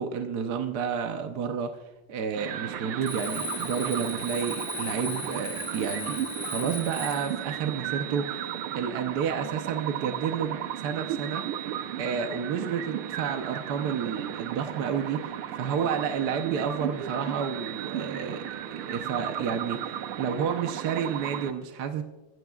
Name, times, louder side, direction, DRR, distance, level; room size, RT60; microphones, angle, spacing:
voice 1, 0.0-1.7 2.1-6.2 6.4-8.5 8.7-11.4 12.0-22.0, right 7 dB, 60° right, 6 dB, 1.2 m, -30 dB
sound 1, 2.3-21.5, right 10 dB, 85° right, 1.7 m, -35 dB
Alarm, 3.0-7.4, left 2 dB, 70° left, 5.2 m, -37 dB
26.5 x 16.0 x 2.4 m, 1.2 s
omnidirectional pair, 2.3 m